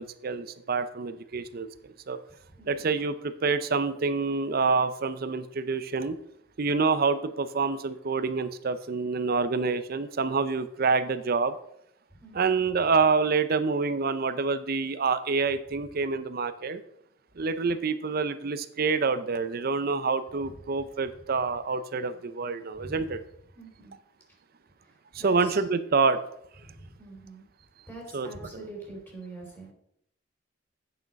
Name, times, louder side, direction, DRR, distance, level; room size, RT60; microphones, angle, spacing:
voice 1, 0.0-1.7 2.1-2.2 2.7-6.2 6.6-11.5 12.4-16.8 17.4-23.2 25.2-26.2 28.1-28.3, right 4 dB, 50° right, 12 dB, 0.6 m, -27 dB
voice 2, 2.5-2.9 12.1-12.6 15.4-15.6 20.4-20.6 21.0-21.1 22.7-23.2 23.5-23.9 24.8-25.6 26.6-27.5 27.9-29.7, right 2 dB, 10° left, -1 dB, 3.2 m, -45 dB
8.6 x 6.5 x 5.2 m, 0.73 s
head